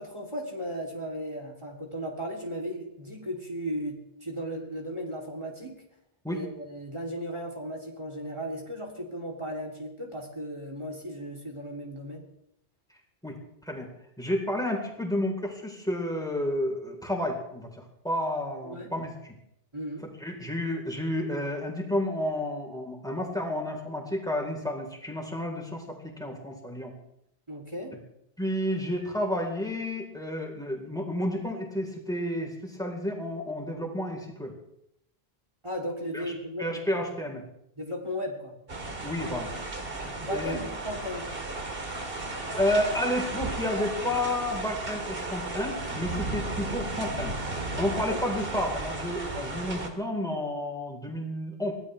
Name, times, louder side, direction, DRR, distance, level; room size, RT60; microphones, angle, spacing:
voice 1, 0.0-5.8 6.3-12.2 18.6-18.9 19.7-20.1 27.5-28.0 35.6-37.1 37.8-38.5 40.0-41.3 48.1-48.2, equal, 30° right, 0 dB, 3.2 m, -36 dB
voice 2, 14.2-19.1 20.2-26.9 28.4-34.5 36.1-36.2 36.6-37.4 39.0-39.5 40.3-40.6 42.6-47.3 47.8-51.7, left 1 dB, 5° left, 0 dB, 4.1 m, -31 dB
sound 1, 38.7-49.9, right 2 dB, 65° right, 2.2 m, -34 dB
24.0 x 17.5 x 3.4 m, 0.76 s
omnidirectional pair, 1.0 m